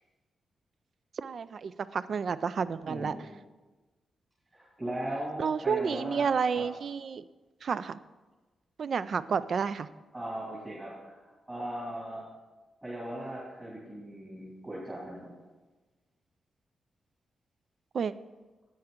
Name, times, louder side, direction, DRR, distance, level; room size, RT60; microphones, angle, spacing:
voice 1, 1.2-3.2 5.4-7.2 7.6-8.0 8.8-9.9 17.9-18.1, right 6 dB, 55° right, 15 dB, 0.3 m, -30 dB
voice 2, 2.8-3.3 4.5-6.3 6.5-6.7 10.1-11.2 11.5-12.3 12.8-15.3, right 1 dB, 20° right, -7 dB, 2.3 m, -38 dB
10.5 x 8.9 x 3.7 m, 1.2 s
wide cardioid pair, 120°, 0 cm